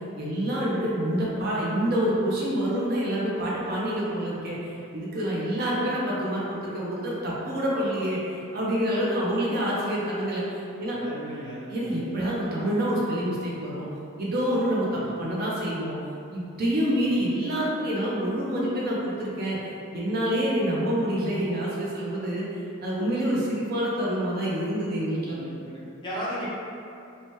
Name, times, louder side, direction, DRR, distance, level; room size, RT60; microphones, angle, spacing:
voice 1, 0.2-4.6 4.9-8.2 8.5-11.0 11.7-13.8 14.2-15.9 16.3-19.6 19.9-22.4 22.8-25.4, equal, 45° right, -6 dB, 0.5 m, -27 dB
voice 2, 11.0-12.0 14.9-15.1 25.3-26.5, equal, 20° left, -8 dB, 0.5 m, -36 dB
2.8 x 2.2 x 3.0 m, 2.6 s
head